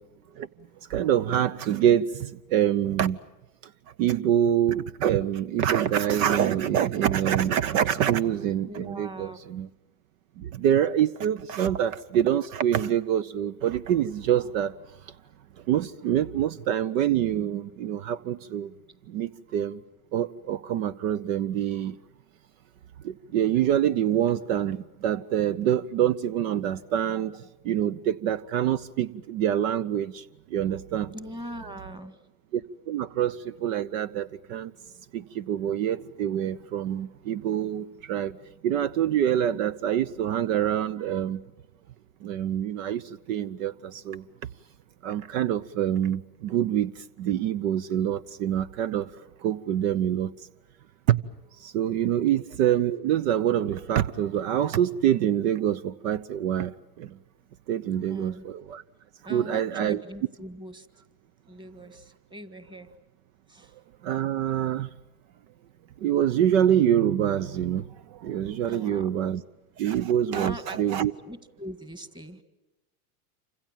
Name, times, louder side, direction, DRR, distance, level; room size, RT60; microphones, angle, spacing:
voice 1, 0.9-3.2 4.0-9.7 10.4-14.8 15.7-18.7 19.1-19.8 20.1-22.0 23.0-30.2 30.5-31.1 32.5-34.7 35.1-38.4 38.6-41.4 42.2-44.2 45.0-49.1 49.4-50.3 51.1-51.2 51.6-57.2 57.7-58.8 59.3-60.0 64.0-64.9 66.0-69.4 69.8-71.1, right 10 dB, 65° right, 0.9 m, -26 dB
voice 2, 8.7-9.4 31.1-32.2 58.1-58.5 59.2-60.9 61.5-62.9 63.5-63.7 68.6-69.1 70.3-72.4, right 1 dB, 10° right, 1.8 m, -41 dB
28.0 x 26.0 x 7.5 m
supercardioid pair, 125°, 45 cm